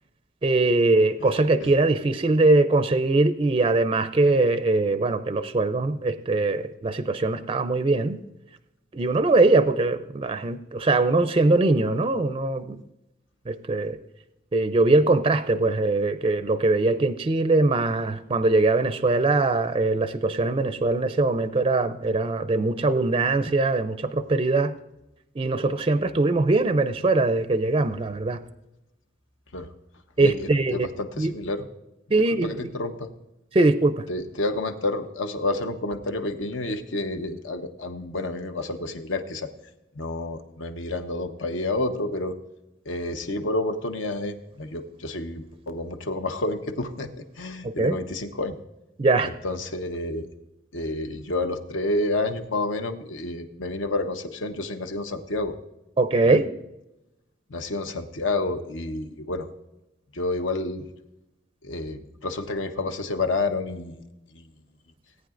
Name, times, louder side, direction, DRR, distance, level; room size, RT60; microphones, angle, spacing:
voice 1, 0.4-8.2 8.9-12.8 13.5-14.0 14.5-24.7 25.4-28.4 30.2-30.9 31.2-31.3 32.1-32.5 33.5-34.0 47.6-48.0 49.0-49.3 56.0-56.4, right 2 dB, 30° right, 11 dB, 0.4 m, -22 dB
voice 2, 30.2-31.7 32.4-33.1 34.1-39.5 40.0-42.4 42.9-47.1 47.4-48.6 49.2-50.3 50.7-55.5 56.2-56.4 57.5-59.5 60.1-60.8 61.6-64.0 64.3-64.5, left 2 dB, 75° left, 7 dB, 1.0 m, -29 dB
18.0 x 9.4 x 2.5 m, 0.93 s
head